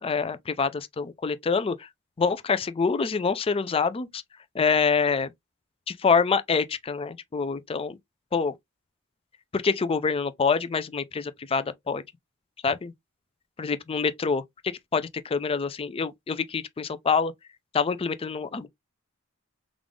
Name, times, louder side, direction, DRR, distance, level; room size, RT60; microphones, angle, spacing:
voice 1, 0.0-1.9 2.2-4.2 4.5-5.3 5.9-8.0 8.3-8.5 9.5-12.0 12.6-12.9 13.6-17.3 17.7-18.7, left 5 dB, 25° left, 0.4 m, -26 dB
3.6 x 2.4 x 3.4 m
head